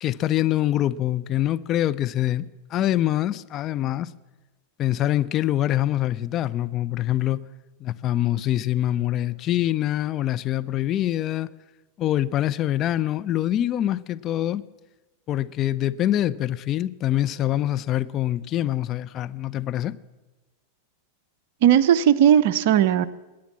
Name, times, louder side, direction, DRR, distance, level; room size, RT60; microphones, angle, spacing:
voice 1, 0.0-4.1 4.8-7.4 7.8-11.5 12.0-14.6 15.3-20.0, left 13 dB, 30° left, 0.4 m, -24 dB
voice 2, 21.6-23.1, right 10 dB, 50° right, 0.6 m, -17 dB
20.5 x 8.6 x 7.3 m
figure-of-eight pair, 90°, 0 cm